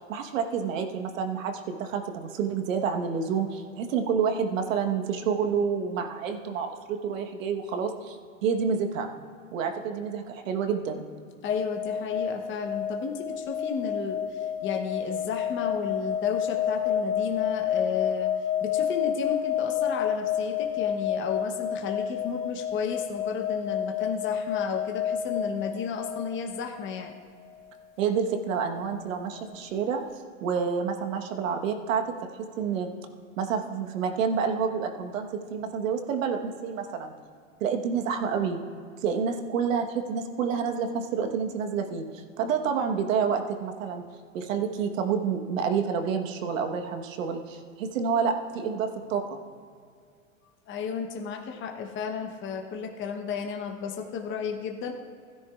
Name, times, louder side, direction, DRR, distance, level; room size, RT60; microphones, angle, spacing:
voice 1, 0.1-9.1 9.5-11.0 28.0-30.0 30.4-32.0 32.6-32.9 33.4-37.1 37.6-38.6 39.0-44.0 44.3-49.4, right 6 dB, 75° right, 5 dB, 1.3 m, -28 dB
voice 2, 11.4-18.3 18.6-27.1 42.6-42.8 50.7-54.9, left 6 dB, 30° left, 2 dB, 1.0 m, -33 dB
sound 1, 11.5-26.5 26.8-27.1, left 8 dB, 80° left, 1.4 m, -29 dB
16.0 x 10.0 x 2.4 m, 2.3 s
hypercardioid pair, 105°, 40 cm